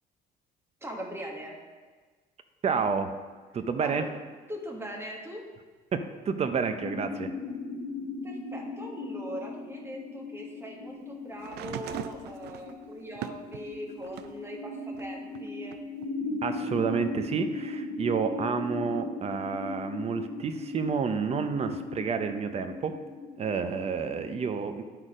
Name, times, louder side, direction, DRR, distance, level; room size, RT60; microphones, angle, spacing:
voice 1, 0.8-1.6 3.8-4.1 4.5-5.4 8.2-15.8, equal, 15° right, 0 dB, 1.6 m, -40 dB
voice 2, 2.6-3.1 3.5-4.1 5.9-7.3 16.4-23.0 23.4-24.8, right 5 dB, 40° right, 8 dB, 0.7 m, -29 dB
sound 1, 6.8-24.5, left 3 dB, 80° left, 1.1 m, -38 dB
sound 2, 11.4-14.4 14.9-16.1 17.1-17.2, right 10 dB, 75° right, 0.4 m, -41 dB
11.0 x 4.2 x 5.0 m, 1.4 s
cardioid pair, 110°, 17 cm